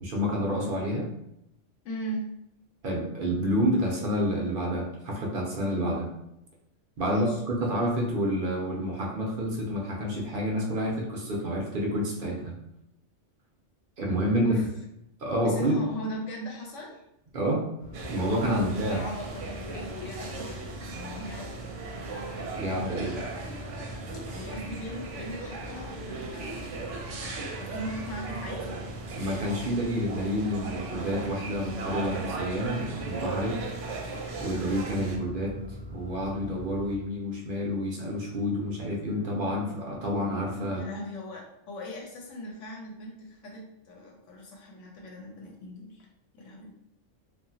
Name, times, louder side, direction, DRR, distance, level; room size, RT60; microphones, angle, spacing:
voice 1, 0.0-1.1 2.8-6.1 7.0-12.5 14.0-14.7 15.2-15.8 17.3-17.6 18.1-19.0 22.5-23.2 29.1-33.6 34.4-35.6 35.9-40.9, equal, 55° right, -1 dB, 0.7 m, -29 dB
voice 2, 1.8-2.3 7.1-7.4 14.4-14.7 15.4-17.0 18.5-21.7 24.1-26.8 27.2-28.7 40.7-46.1 46.3-46.8, equal, 80° left, -1 dB, 0.9 m, -39 dB
sound 1, 17.8-37.0, equal, 60° left, 0.4 m, -43 dB
sound 2, 17.9-35.2, right 3 dB, 80° right, 0.9 m, -38 dB
2.8 x 2.4 x 2.7 m, 0.82 s
omnidirectional pair, 1.3 m